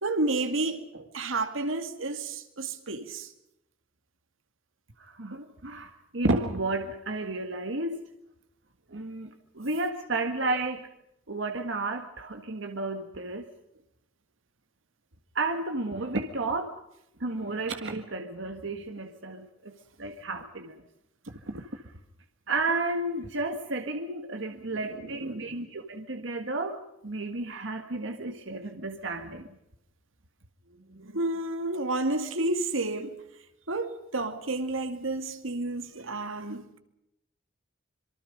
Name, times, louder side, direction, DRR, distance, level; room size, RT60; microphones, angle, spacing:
voice 1, 0.0-3.3 5.3-5.4 24.5-25.6 30.9-33.2 33.7-36.8, right 2 dB, 85° right, 2.3 m, -31 dB
voice 2, 5.0-8.0 8.9-10.9 11.3-13.5 15.4-16.8 17.2-20.7 21.3-21.8 22.5-29.5, right 2 dB, 65° right, 1.7 m, -32 dB
26.5 x 23.5 x 5.2 m
head